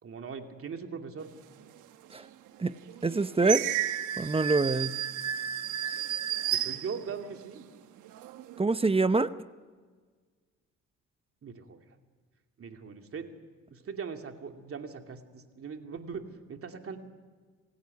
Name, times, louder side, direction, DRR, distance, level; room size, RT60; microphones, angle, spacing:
voice 1, 0.0-1.3 6.5-7.7 11.4-11.8 12.6-13.3 13.7-17.0, right 6 dB, 50° right, 4 dB, 2.8 m, -40 dB
sound 1, 2.0-2.1 2.8-7.5 8.0-8.6, right 10 dB, 85° right, 1.2 m, -33 dB
voice 2, 3.0-3.6 4.2-5.0 8.6-9.3, right 3 dB, 20° right, 13 dB, 0.8 m, -25 dB
28.0 x 16.5 x 9.7 m, 1.5 s
cardioid pair, 90°, 30 cm